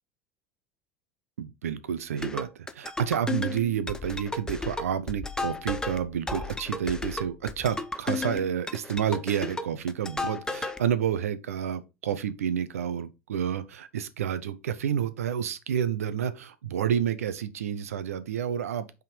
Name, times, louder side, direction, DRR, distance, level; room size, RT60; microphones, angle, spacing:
voice 1, 1.4-19.0, right 9 dB, 90° right, 0.6 m, -30 dB
sound 1, 2.2-10.8, left 3 dB, 10° left, 0.7 m, -34 dB
5.6 x 3.7 x 5.1 m
hypercardioid pair, 85°, 8 cm